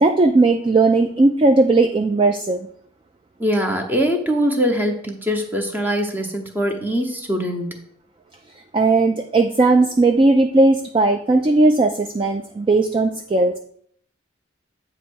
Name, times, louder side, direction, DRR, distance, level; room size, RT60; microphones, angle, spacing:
voice 1, 0.0-2.7 8.7-13.6, right 2 dB, 25° right, 6 dB, 0.3 m, -17 dB
voice 2, 3.4-7.8, equal, 10° right, 3 dB, 0.8 m, -22 dB
8.5 x 3.0 x 6.2 m, 0.64 s
head